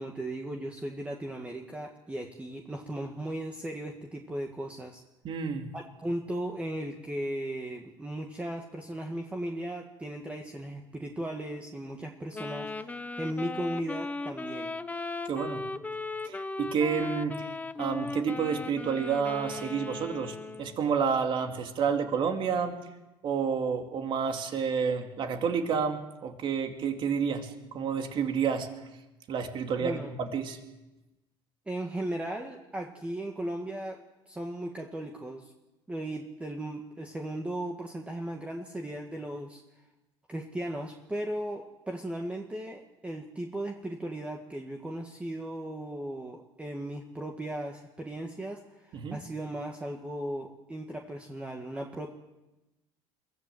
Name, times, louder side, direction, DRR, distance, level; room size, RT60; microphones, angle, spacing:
voice 1, 0.0-5.0 5.7-12.9 13.2-14.7 29.8-30.1 31.6-35.4 35.9-39.6 40.3-52.1, right 1 dB, 10° right, 1 dB, 1.8 m, -36 dB
voice 2, 5.2-5.7 15.3-15.6 16.2-17.4 17.8-22.7 23.2-28.7 29.3-30.6 48.9-49.2, right 6 dB, 50° right, 5 dB, 2.7 m, -30 dB
Wind instrument woodwind instrument, 12.3-20.8, left 3 dB, 15° left, 0.9 m, -37 dB
23.0 x 14.5 x 7.9 m, 1.0 s
supercardioid pair, 105°, 11 cm